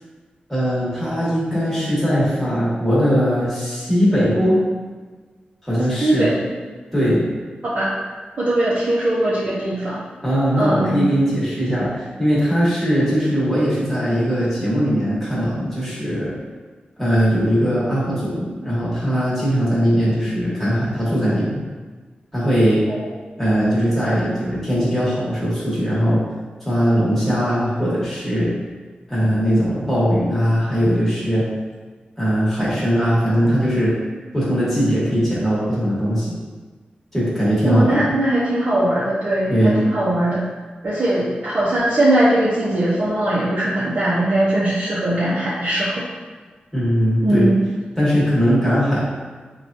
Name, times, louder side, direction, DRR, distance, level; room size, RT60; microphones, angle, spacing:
voice 1, 0.5-4.6 5.6-6.3 6.9-7.3 10.2-16.3 17.0-21.6 22.3-22.8 23.4-26.2 26.6-28.5 29.1-31.5 32.2-33.9 34.3-36.3 37.1-38.1 39.5-39.8 46.7-47.4 48.0-49.0, equal, 5° left, -10 dB, 1.3 m, -20 dB
voice 2, 6.0-6.5 7.6-7.9 8.4-10.0 10.5-11.0 22.9-23.1 33.4-33.5 37.6-40.4 40.8-46.1 47.2-47.5, right 1 dB, 45° right, -10 dB, 0.7 m, -20 dB
4.7 x 2.3 x 2.6 m, 1.4 s
wide cardioid pair, 140°, 3 cm